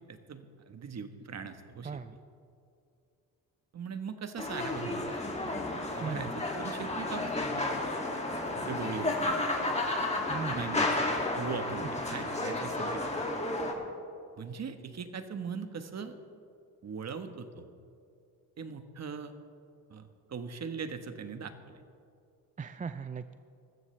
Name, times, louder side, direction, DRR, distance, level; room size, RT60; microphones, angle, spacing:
voice 1, 0.1-2.0 3.7-5.2 5.8-7.7 8.5-9.3 10.3-10.9 11.3-13.3 14.4-16.1 16.8-17.7 18.6-19.3 19.9-21.7, right 5 dB, 45° right, 8 dB, 1.3 m, -40 dB
voice 2, 1.8-2.2 6.0-6.3 8.6-8.7 10.3-10.7 11.8-11.9 12.2-12.3 22.6-23.3, right 6 dB, 20° right, 11 dB, 0.4 m, -38 dB
sound 1, 4.4-13.7, left 2 dB, 20° left, 2.3 m, -32 dB
21.0 x 14.0 x 3.3 m, 2.5 s
cardioid pair, 80°, 36 cm